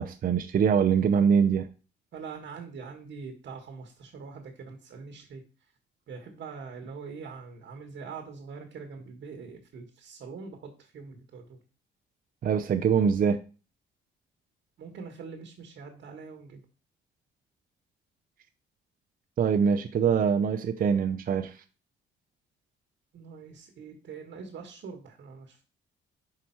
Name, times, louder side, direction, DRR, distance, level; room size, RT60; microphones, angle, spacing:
voice 1, 0.0-1.7 12.4-13.4 19.4-21.5, right 7 dB, 45° right, 0.5 m, -24 dB
voice 2, 2.1-5.4 6.1-11.6 14.8-16.6 23.1-25.7, right 5 dB, 65° right, 1.3 m, -43 dB
5.3 x 4.9 x 4.4 m
cardioid pair, 90°, 20 cm